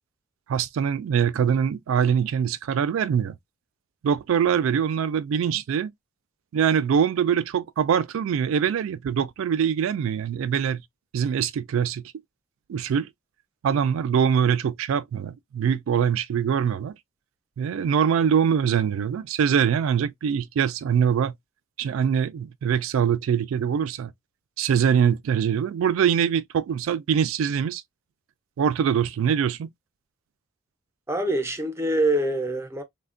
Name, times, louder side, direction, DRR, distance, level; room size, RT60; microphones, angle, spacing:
voice 1, 0.5-3.4 4.0-5.9 6.5-10.8 11.1-12.0 12.7-13.1 13.6-16.9 17.6-21.3 21.8-24.1 24.6-27.8 28.6-29.7, right 7 dB, 70° right, 0.3 m, -23 dB
voice 2, 31.1-32.8, right 1 dB, 15° right, 0.5 m, -25 dB
3.3 x 2.1 x 2.4 m
head